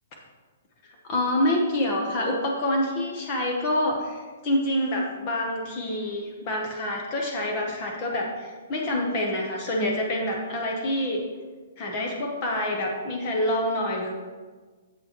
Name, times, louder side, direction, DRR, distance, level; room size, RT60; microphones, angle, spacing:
voice 1, 0.8-11.2 11.8-14.1, left 1 dB, 25° left, 0 dB, 0.8 m, -27 dB
7.3 x 6.5 x 2.9 m, 1.4 s
hypercardioid pair, 175°, 0 cm